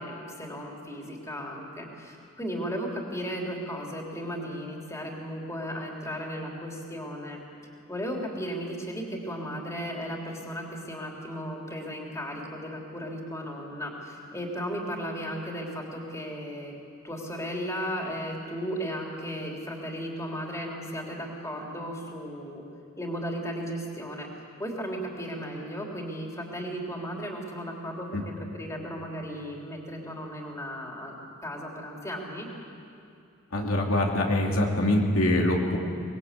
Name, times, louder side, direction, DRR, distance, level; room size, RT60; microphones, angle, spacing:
voice 1, 0.0-7.4 7.9-16.7 17.0-22.6 23.0-24.3 24.6-31.2 31.4-32.5, equal, 15° left, -1 dB, 3.3 m, -35 dB
voice 2, 33.5-35.8, left 1 dB, 85° left, 0 dB, 2.8 m, -24 dB
24.0 x 20.5 x 8.3 m, 2.6 s
head